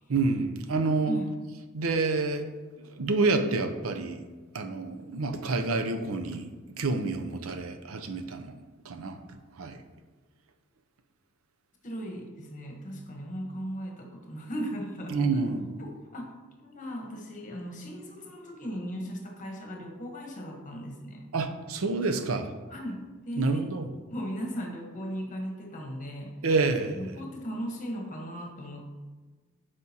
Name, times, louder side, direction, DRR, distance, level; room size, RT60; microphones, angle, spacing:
voice 1, 0.1-1.2 1.7-2.5 3.0-4.2 4.5-8.6 8.8-9.2 9.6-9.8 15.1-15.6 21.3-22.5 23.4-23.9 26.4-27.0, right 3 dB, 80° right, 7 dB, 0.6 m, -28 dB
voice 2, 11.8-15.5 15.8-16.3 16.6-21.3 22.7-23.7 24.1-26.3 27.0-28.9, equal, 35° left, 1 dB, 1.1 m, -37 dB
8.3 x 5.1 x 2.9 m, 1.3 s
head